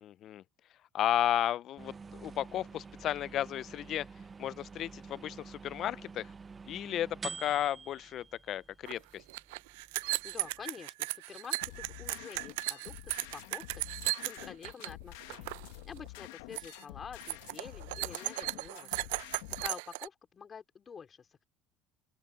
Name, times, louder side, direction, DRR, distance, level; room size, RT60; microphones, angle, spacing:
voice 1, 0.0-0.4 0.9-4.1 4.4-6.3 6.7-9.2, left 11 dB, 55° left, 0.4 m, -33 dB
sound 1, 1.8-10.6, right 5 dB, 25° right, 0.9 m, -48 dB
sound 2, 8.9-9.0 9.2-14.9 15.2-15.7 16.0-16.3 16.6-16.8 17.2-20.1, right 21 dB, 90° right, 0.4 m, -36 dB
voice 2, 10.2-15.5 15.8-19.1 19.6-21.4, left 6 dB, 35° left, 3.1 m, -48 dB
sound 3, 11.6-19.7, left 19 dB, 85° left, 1.0 m, -48 dB
open air
supercardioid pair, 95°, 0 cm